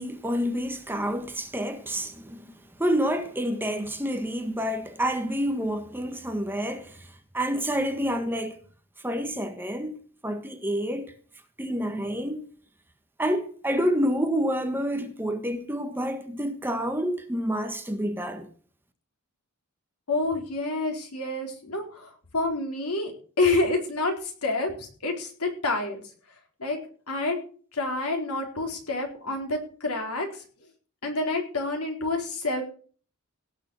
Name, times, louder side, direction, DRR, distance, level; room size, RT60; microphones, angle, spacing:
voice 1, 0.0-8.6 9.0-10.0 10.2-11.1 11.6-12.4 13.2-18.5, equal, 10° right, 1.4 m, -28 dB
voice 2, 20.1-23.1 23.4-26.0 26.6-26.8 27.1-27.4 27.7-30.4 31.0-32.6, left 2 dB, 80° left, 4.2 m, -28 dB
17.5 x 6.8 x 6.4 m
head